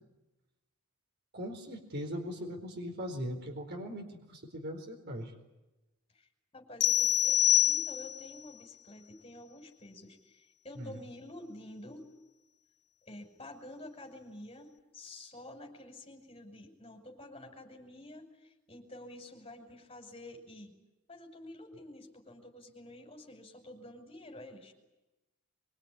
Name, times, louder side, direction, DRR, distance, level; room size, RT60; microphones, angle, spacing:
voice 1, 1.3-5.3 10.7-11.0, equal, 50° right, 3 dB, 4.4 m, -40 dB
voice 2, 6.5-7.4 7.6-12.1 13.0-20.7 21.1-24.7, left 1 dB, 25° left, 3 dB, 5.9 m, -49 dB
sound 1, 6.8-8.3, left 12 dB, 55° left, 1.1 m, -26 dB
24.5 x 24.0 x 9.9 m, 1.0 s
head